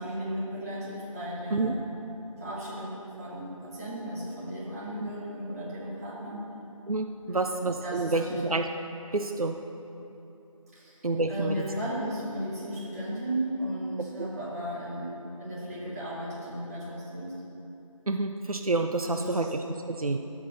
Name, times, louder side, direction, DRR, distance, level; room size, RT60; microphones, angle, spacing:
voice 1, 0.0-1.8 2.4-6.4 7.3-8.4 10.7-11.0 11.3-17.3 19.0-19.5, equal, 25° right, -8 dB, 2.7 m, -35 dB
voice 2, 6.9-8.6 9.1-9.6 11.0-11.6 14.2-14.3 18.1-20.2, right 3 dB, 85° right, 5 dB, 0.7 m, -28 dB
13.0 x 6.0 x 6.7 m, 3.0 s
figure-of-eight pair, 165°, 18 cm